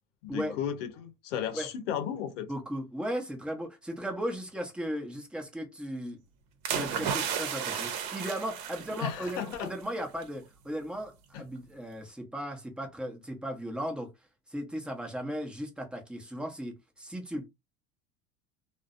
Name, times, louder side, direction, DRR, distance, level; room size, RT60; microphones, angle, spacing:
voice 1, 0.2-2.5 9.0-9.7 11.3-11.4, left 9 dB, 80° left, 0.7 m, -34 dB
voice 2, 2.5-6.2 6.7-14.1 14.5-17.5, equal, 5° right, 0.7 m, -36 dB
sound 1, 6.7-9.7 10.0-10.2, right 7 dB, 65° right, 0.8 m, -33 dB
2.5 x 2.1 x 2.4 m
hypercardioid pair, 95°, 36 cm